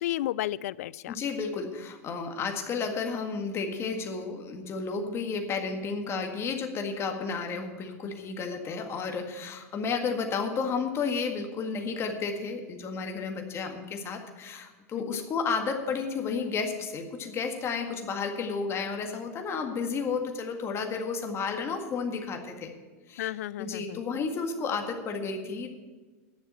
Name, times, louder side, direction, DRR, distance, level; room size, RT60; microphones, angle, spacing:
voice 1, 0.0-1.2 15.0-15.3 20.9-21.0 23.2-24.0, left 14 dB, 75° left, 22 dB, 0.3 m, -33 dB
voice 2, 1.1-22.7 23.1-23.3 23.6-25.7, left 5 dB, 30° left, 4 dB, 1.8 m, -32 dB
10.5 x 6.9 x 8.8 m, 1.3 s
hypercardioid pair, 110°, 8 cm